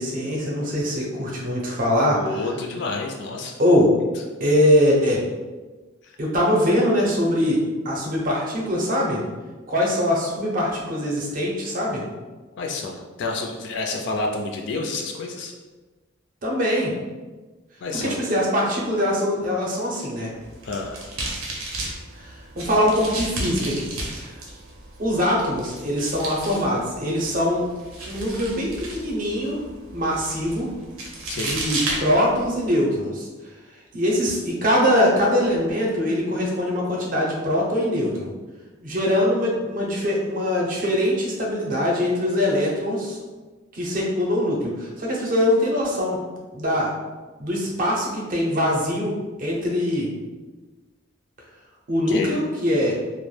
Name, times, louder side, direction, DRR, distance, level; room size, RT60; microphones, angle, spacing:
voice 1, 0.0-2.5 3.6-3.9 4.4-5.2 6.2-9.2 9.7-12.0 16.4-16.9 17.9-20.3 22.1-24.4 25.0-27.7 28.1-29.6 29.9-30.7 31.3-33.3 33.9-38.3 38.8-43.2 43.7-46.2 46.5-46.9 47.4-49.1 49.4-50.1 51.9-53.0, left 1 dB, 40° right, -2 dB, 0.5 m, -22 dB
voice 2, 2.1-3.6 12.6-15.5 17.8-18.2 20.6-21.0 31.3-31.5 52.1-52.3, left 3 dB, 55° left, 2 dB, 0.3 m, -29 dB
sound 1, 20.4-32.7, right 2 dB, 85° right, 0.6 m, -34 dB
2.2 x 2.1 x 3.1 m, 1.3 s
head